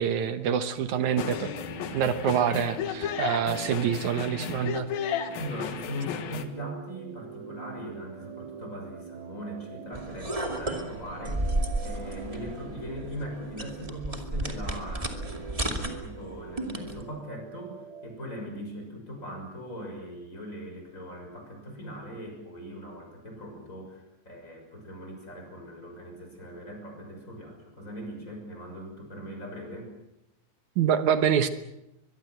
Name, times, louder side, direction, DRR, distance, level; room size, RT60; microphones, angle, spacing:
voice 1, 0.0-1.5 1.9-4.9 30.8-31.5, right 8 dB, 70° right, 10 dB, 1.8 m, -26 dB
sound 1, 1.1-18.1, right 8 dB, 90° right, 4.2 m, -45 dB
sound 2, 1.2-6.5, left 8 dB, 65° left, 3.1 m, -34 dB
voice 2, 5.3-29.9, equal, 20° left, 2 dB, 6.4 m, -40 dB
sound 3, 9.9-17.0, right 1 dB, 15° right, 1.3 m, -33 dB
23.0 x 23.0 x 7.9 m, 0.87 s
omnidirectional pair, 4.8 m